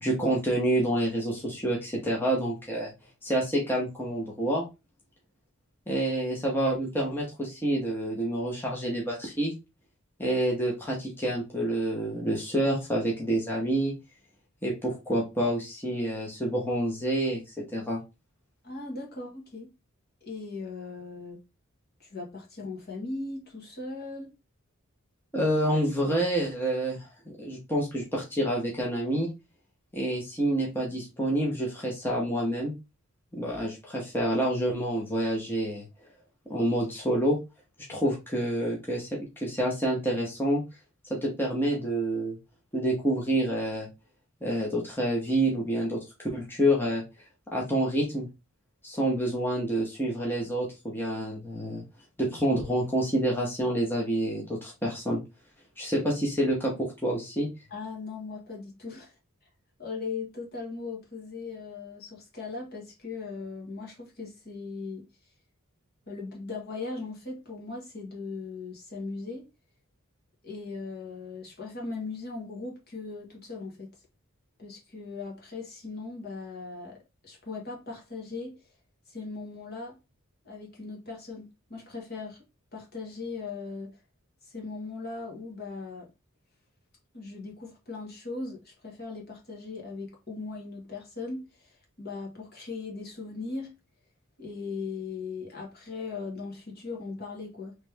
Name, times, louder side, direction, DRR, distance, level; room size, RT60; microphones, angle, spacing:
voice 1, 0.0-2.9 3.2-4.6 5.9-9.5 10.2-13.9 14.6-18.0 25.3-27.1 27.4-29.3 29.9-32.7 33.3-35.8 36.5-37.4 37.9-40.6 41.1-42.4 42.7-43.9 44.4-47.0 47.5-48.3 48.8-51.8 52.2-55.2 55.8-57.5, right 1 dB, 10° left, 0.9 m, -28 dB
voice 2, 18.6-19.7 20.2-21.4 22.0-24.3 57.7-59.1 59.8-65.1 66.1-69.5 70.4-73.9 74.6-78.6 79.1-80.0 80.4-82.4 82.7-84.0 84.4-86.1 87.1-93.7 94.4-97.8, left 3 dB, 45° left, 1.4 m, -38 dB
3.4 x 3.2 x 3.3 m
head